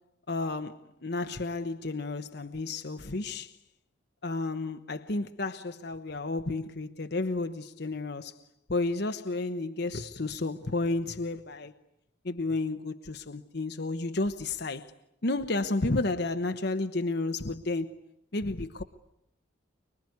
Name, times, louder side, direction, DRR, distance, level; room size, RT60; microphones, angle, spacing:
voice 1, 0.3-3.5 4.2-8.4 8.7-11.7 12.2-14.9 15.2-17.9 18.3-18.8, left 2 dB, 55° left, 1.0 m, -32 dB
25.0 x 23.0 x 9.6 m
head